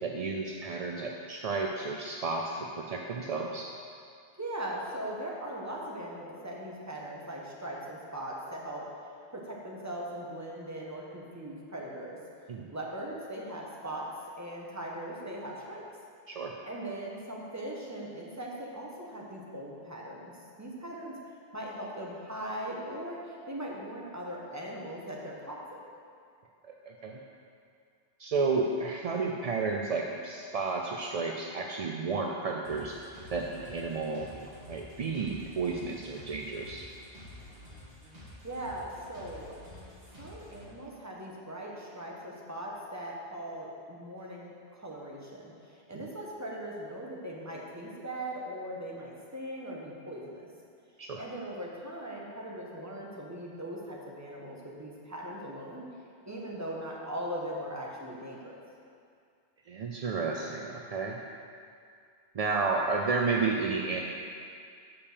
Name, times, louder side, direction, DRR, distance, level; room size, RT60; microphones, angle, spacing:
voice 1, 0.0-3.7 12.5-12.7 16.3-16.5 26.6-27.2 28.2-32.9 33.3-36.8 45.9-46.0 51.0-51.2 59.7-61.2 62.3-64.0, right 4 dB, 55° right, 1 dB, 0.4 m, -32 dB
voice 2, 4.4-8.8 9.3-12.2 12.7-14.1 14.4-15.8 16.7-20.3 20.6-21.2 21.5-25.8 38.4-39.6 40.2-50.5 51.2-55.8 56.3-58.6, right 1 dB, 15° right, -3 dB, 1.1 m, -39 dB
sound 1, 32.6-40.7, left 1 dB, 35° right, 1.9 m, -50 dB
6.9 x 5.4 x 6.6 m, 2.3 s
omnidirectional pair, 1.1 m